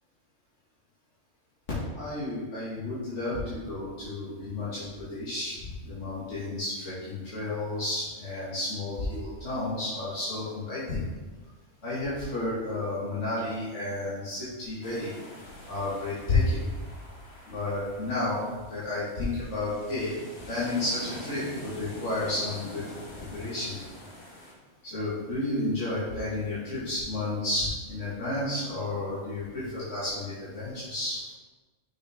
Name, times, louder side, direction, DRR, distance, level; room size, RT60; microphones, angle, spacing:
voice 1, 1.9-11.0 11.8-15.1 15.7-16.6 17.5-20.1 20.5-22.8 23.3-23.8 24.8-31.2, left 2 dB, 80° left, -11 dB, 2.3 m, -31 dB
sound 1, 14.8-24.5, left 1 dB, 60° left, 1.4 m, -45 dB
6.3 x 6.0 x 3.7 m, 1.2 s
omnidirectional pair, 1.2 m